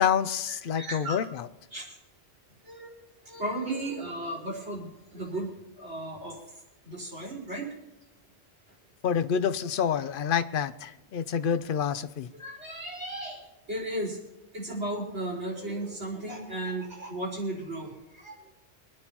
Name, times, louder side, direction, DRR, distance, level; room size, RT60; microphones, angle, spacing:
voice 1, 0.0-1.5 9.0-12.3, left 7 dB, 60° left, 12 dB, 0.8 m, -27 dB
voice 2, 0.8-1.2 1.7-2.0 2.6-2.9 3.3-5.5 5.8-6.4 6.8-7.7 12.3-14.2 14.5-18.4, right 1 dB, 85° right, -4 dB, 5.2 m, -35 dB
25.5 x 9.8 x 3.0 m, 0.97 s
omnidirectional pair, 1.1 m